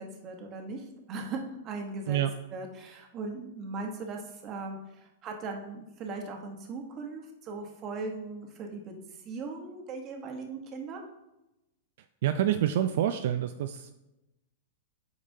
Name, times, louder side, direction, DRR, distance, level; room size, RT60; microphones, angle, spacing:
voice 1, 0.0-2.2 2.5-9.0 9.2-11.0, right 3 dB, 30° right, 3 dB, 1.1 m, -39 dB
voice 2, 12.2-13.9, right 11 dB, 60° right, 9 dB, 0.3 m, -27 dB
8.5 x 5.1 x 2.7 m, 0.93 s
supercardioid pair, 150°, 0 cm